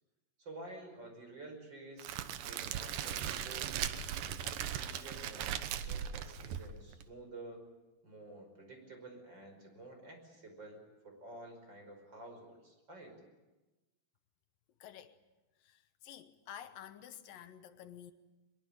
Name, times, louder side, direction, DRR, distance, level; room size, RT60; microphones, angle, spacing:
voice 1, 0.4-3.9 4.4-7.6 8.0-13.2, right 2 dB, 30° right, 5.9 m, -51 dB
Crackle, 2.0-7.0, right 9 dB, 75° right, 2.7 m, -38 dB
voice 2, 14.8-15.2 15.6-18.1, left 10 dB, 80° left, 2.7 m, -51 dB
22.5 x 22.5 x 8.9 m
omnidirectional pair, 4.0 m